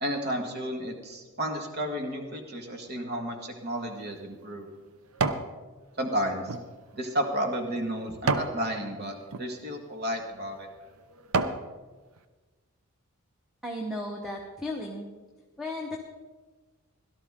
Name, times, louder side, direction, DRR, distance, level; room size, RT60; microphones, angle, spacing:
voice 1, 0.0-4.7 6.0-6.6 6.9-10.7, equal, 45° right, 3 dB, 1.7 m, -32 dB
sound 1, 3.7-5.5 6.0-8.6 9.2-9.5 10.1-10.3 10.8-11.7 12.2-12.3, right 4 dB, 75° right, 0.7 m, -31 dB
voice 2, 13.6-15.0 15.6-16.0, left 1 dB, ahead, -1 dB, 1.1 m, -34 dB
17.0 x 12.5 x 3.7 m, 1.3 s
head